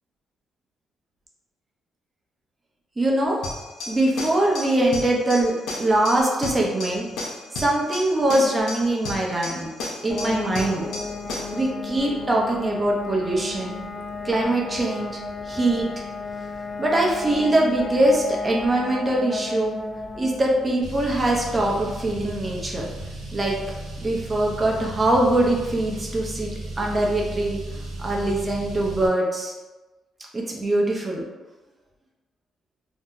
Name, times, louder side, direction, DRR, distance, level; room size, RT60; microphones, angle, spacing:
voice 1, 3.0-3.4 3.9-5.5 5.8-7.1 7.5-9.7 10.0-10.9 11.5-13.8 14.2-15.2 15.4-15.9 16.8-19.8 20.1-22.9 23.3-23.8 24.0-26.5 26.8-29.5 30.3-31.2, right 1 dB, 25° right, -2 dB, 0.6 m, -22 dB
sound 1, 3.4-11.6, left 2 dB, 90° left, 0.7 m, -34 dB
sound 2, 10.1-24.7, left 3 dB, 25° left, 0.4 m, -35 dB
Car, 20.8-29.1, right 2 dB, 75° right, 0.7 m, -35 dB
2.7 x 2.1 x 3.6 m, 1.2 s
cardioid pair, 90°, 0 cm